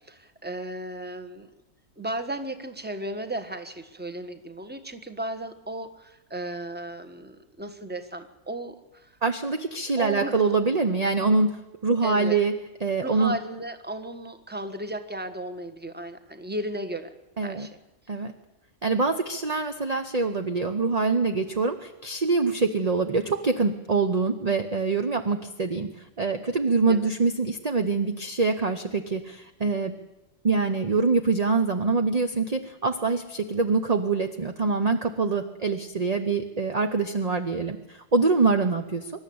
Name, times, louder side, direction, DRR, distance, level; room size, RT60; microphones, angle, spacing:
voice 1, 0.0-1.5 2.0-9.1 10.0-10.4 12.0-12.4 13.0-17.1 17.4-17.8 26.9-27.0, right 1 dB, 5° right, 9 dB, 1.2 m, -35 dB
voice 2, 9.2-12.5 12.8-13.3 17.4-17.7 18.1-18.3 18.8-30.0 30.4-39.1, right 4 dB, 30° right, 6 dB, 0.9 m, -25 dB
25.0 x 12.5 x 8.7 m, 0.99 s
omnidirectional pair, 1.5 m